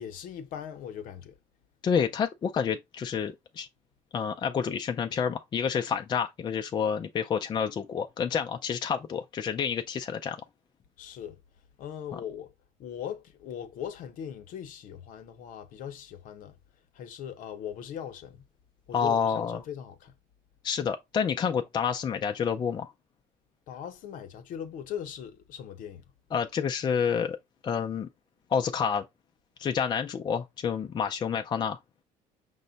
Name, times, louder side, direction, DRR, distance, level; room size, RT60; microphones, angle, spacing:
voice 1, 0.0-1.3 11.0-11.4 11.8-12.5 12.8-16.6 16.9-18.5 18.9-20.1 23.7-26.0, left 9 dB, 60° left, 0.8 m, -40 dB
voice 2, 1.8-3.7 4.1-10.4 12.1-12.2 18.9-19.6 20.6-22.9 26.3-27.4 27.6-28.1 28.5-29.0 29.6-31.8, left 7 dB, 30° left, 0.4 m, -29 dB
5.3 x 2.1 x 3.9 m
cardioid pair, 120°, 15 cm